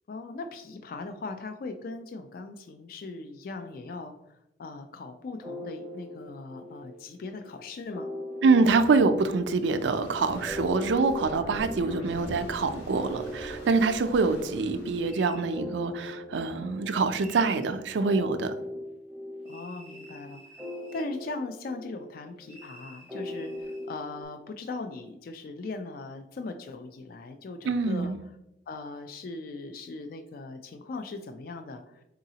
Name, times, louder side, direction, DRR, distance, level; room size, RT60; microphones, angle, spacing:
voice 1, 0.1-8.1 19.4-20.4 20.9-28.1 28.7-32.0, left 3 dB, 55° left, 8 dB, 0.3 m, -39 dB
sound 1, 5.4-24.2, left 1 dB, ahead, 0.6 m, -41 dB
voice 2, 8.4-18.5 27.7-28.2, right 4 dB, 90° right, 9 dB, 0.4 m, -25 dB
sound 2, 9.4-15.2, left 1 dB, 75° left, 1.3 m, -43 dB
sound 3, 15.0-15.5 17.1-17.7 19.5-21.2 22.5-23.9, right 2 dB, 30° left, 1.4 m, -51 dB
3.9 x 3.7 x 2.8 m, 0.89 s
head